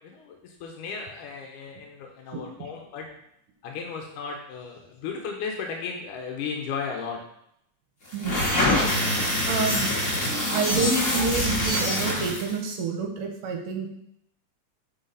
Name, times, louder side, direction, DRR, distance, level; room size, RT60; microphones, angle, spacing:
voice 1, 0.0-3.1 3.6-7.2, left 5 dB, 85° left, 2 dB, 2.4 m, -35 dB
sound 1, 8.1-12.5, left 1 dB, 25° left, 1.3 m, -25 dB
voice 2, 9.5-9.9 10.5-13.9, right 4 dB, 70° right, 2 dB, 2.1 m, -28 dB
8.1 x 5.0 x 4.0 m, 0.74 s
omnidirectional pair, 3.5 m